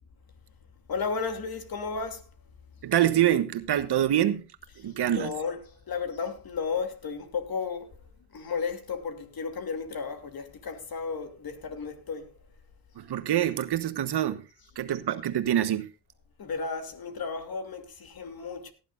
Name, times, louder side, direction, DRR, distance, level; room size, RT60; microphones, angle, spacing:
voice 1, 0.9-2.3 4.8-8.0 8.3-12.3 16.4-18.7, left 5 dB, 50° left, 2.8 m, -34 dB
voice 2, 2.8-4.4 4.8-5.3 13.0-14.4 14.8-15.9, right 11 dB, 55° right, 1.2 m, -25 dB
17.5 x 11.0 x 2.5 m
cardioid pair, 80°, 46 cm